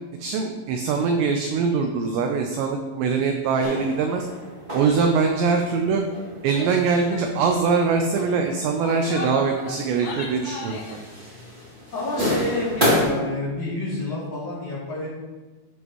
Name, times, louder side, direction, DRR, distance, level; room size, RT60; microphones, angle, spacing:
voice 1, 0.2-4.3 4.7-6.0 6.4-11.1, right 5 dB, 80° right, 4 dB, 2.5 m, -23 dB
sound 1, 3.6-13.0, left 1 dB, 30° right, 0.9 m, -31 dB
Female speech woman speaking / Yell, 6.5-6.8 7.1-7.3 7.6-7.9 8.6-11.0, left 2 dB, 80° left, 1.9 m, -36 dB
voice 2, 11.9-15.1, left 2 dB, 40° left, -9 dB, 3.7 m, -28 dB
12.5 x 8.2 x 3.1 m, 1.3 s
omnidirectional pair, 5.8 m